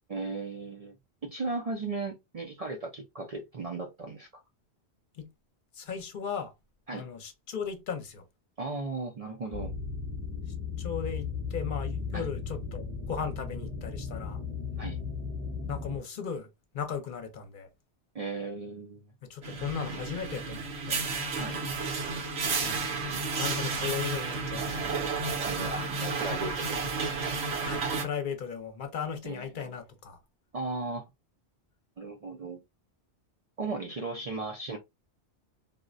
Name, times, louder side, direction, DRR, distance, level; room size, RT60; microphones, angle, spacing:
voice 1, 0.1-1.0 1.2-4.3 6.9-7.1 8.6-9.7 12.1-12.3 14.8-15.0 18.1-19.1 21.4-21.7 25.5-26.9 29.2-29.7 30.5-31.1 32.0-32.6 33.6-34.8, right 3 dB, 50° right, 0.5 m, -36 dB
voice 2, 5.7-6.5 6.9-8.2 10.8-14.4 15.7-16.5 16.7-17.7 19.2-21.0 22.6-22.9 23.4-24.8 27.6-30.2, left 7 dB, 55° left, 0.8 m, -36 dB
sound 1, 9.5-16.0, left 5 dB, 5° right, 0.7 m, -36 dB
sound 2, 19.4-28.0, right 4 dB, 70° right, 1.0 m, -32 dB
3.6 x 2.1 x 2.4 m
omnidirectional pair, 1.1 m